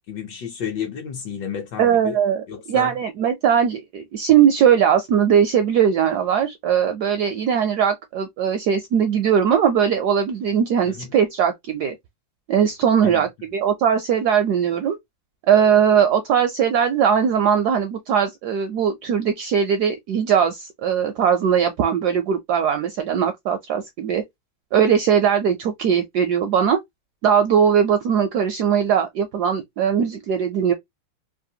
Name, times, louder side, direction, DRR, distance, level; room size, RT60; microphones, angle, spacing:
voice 1, 0.1-2.2 2.5-2.9 11.0-11.1 13.0-13.2, left 8 dB, 65° left, 1.3 m, -31 dB
voice 2, 1.8-11.9 12.5-15.0 15.5-24.2 24.7-26.8 27.2-30.7, right 8 dB, 75° right, 0.9 m, -20 dB
3.3 x 2.5 x 2.7 m
omnidirectional pair, 2.2 m